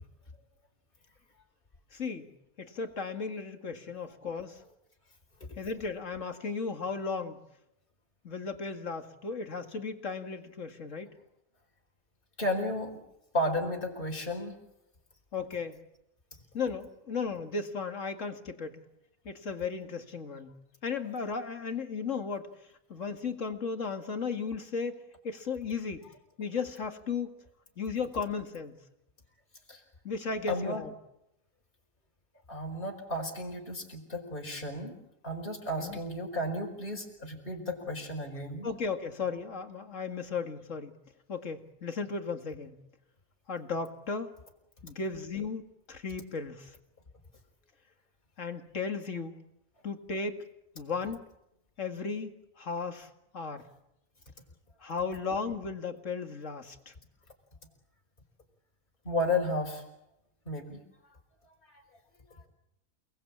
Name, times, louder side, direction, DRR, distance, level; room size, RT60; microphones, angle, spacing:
voice 1, 1.9-2.3 2.6-4.6 5.6-7.4 8.2-11.1 15.3-15.8 16.5-18.8 19.3-20.5 20.8-22.5 22.9-26.0 26.4-27.3 27.8-28.8 30.0-30.9 35.8-36.0 38.6-41.0 41.3-42.8 43.5-44.3 44.8-46.8 48.4-49.4 49.8-50.4 50.8-51.3 51.8-53.7 54.8-56.9, left 5 dB, 65° left, 7 dB, 2.3 m, -35 dB
voice 2, 12.4-13.0 13.3-14.6 29.7-29.8 30.5-30.8 32.5-34.9 35.2-38.7 59.0-59.8 60.4-60.8 61.7-61.8, left 1 dB, 40° left, 1 dB, 4.9 m, -33 dB
29.5 x 19.5 x 8.6 m, 0.85 s
omnidirectional pair, 1.4 m